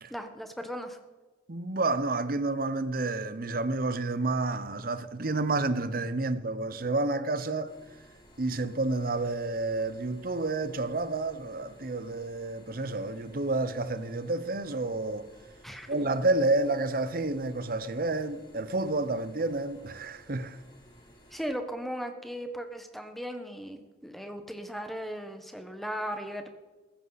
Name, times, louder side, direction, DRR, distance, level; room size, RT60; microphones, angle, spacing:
voice 1, 0.1-1.0 15.6-16.0 21.3-26.5, equal, ahead, 1.2 m, -37 dB
voice 2, 1.5-7.7 8.4-15.3 15.9-20.6, right 2 dB, 50° right, 0.8 m, -30 dB
sound 1, 7.6-21.5, equal, 25° left, 3.9 m, -57 dB
15.0 x 14.5 x 4.1 m
head